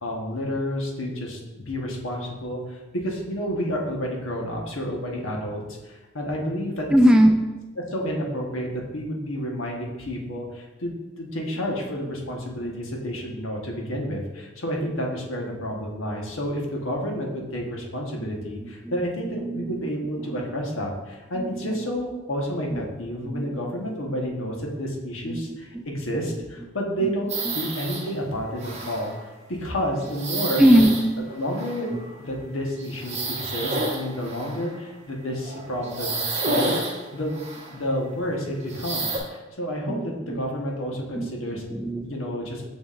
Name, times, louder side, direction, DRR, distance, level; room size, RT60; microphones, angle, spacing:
voice 1, 0.0-6.9 7.9-29.1 29.6-30.6 31.3-31.9 32.2-36.7 37.1-37.4 37.7-41.7 42.0-42.6, equal, 85° left, -1 dB, 1.2 m, -30 dB
voice 2, 6.9-7.4 12.6-12.7 18.2-18.3 18.6-18.9 19.2-19.9 20.2-20.5 21.4-21.9 22.7-22.8 23.3-23.7 25.3-25.4 25.7-25.8 27.0-27.1 27.5-27.6 30.6-31.0 31.9-32.0 39.9-40.4 41.1-42.1, equal, 5° right, 4 dB, 0.3 m, -22 dB
sound 1, 27.3-28.1 28.6-29.2 30.0-32.2 32.8-34.8 35.4-37.8 38.6-39.2, right 2 dB, 35° right, 1.3 m, -30 dB
7.2 x 6.2 x 2.5 m, 1.1 s
head